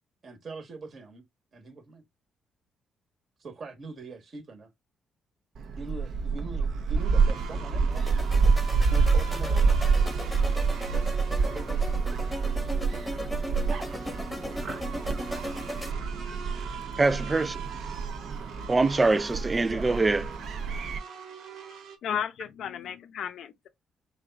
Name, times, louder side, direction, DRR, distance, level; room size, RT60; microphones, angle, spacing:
voice 1, 0.2-1.2 1.5-2.0 3.4-4.7 5.8-8.0 8.9-9.7 11.4-12.1 19.6-19.9, right 3 dB, 40° right, 1.2 m, -42 dB
Gull seagull, 5.6-21.0, right 4 dB, 65° right, 0.7 m, -27 dB
sound 1, 7.0-22.0, right 7 dB, 90° right, 1.2 m, -43 dB
sound 2, 7.9-15.9, equal, 5° left, 1.0 m, -37 dB
voice 2, 17.0-17.6 18.7-20.3, right 3 dB, 20° right, 0.3 m, -24 dB
voice 3, 21.7-23.7, left 8 dB, 70° left, 0.7 m, -34 dB
4.9 x 2.3 x 3.8 m
cardioid pair, 115°, 0 cm